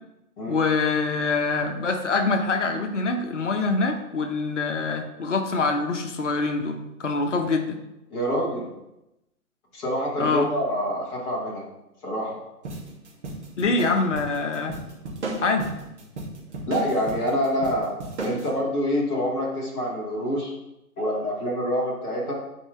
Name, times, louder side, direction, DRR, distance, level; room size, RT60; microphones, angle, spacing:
voice 1, 0.5-7.8 10.2-10.5 13.6-14.8 15.4-15.7, left 3 dB, 50° left, 5 dB, 1.1 m, -25 dB
voice 2, 8.1-8.7 9.7-11.7 12.0-12.4 16.7-17.9 18.2-20.5 21.0-22.3, equal, 10° left, -4 dB, 1.0 m, -26 dB
sound 1, 12.6-18.5, right 2 dB, 45° right, 2.5 m, -34 dB
12.5 x 4.7 x 3.4 m, 0.92 s
figure-of-eight pair, 135°, 46 cm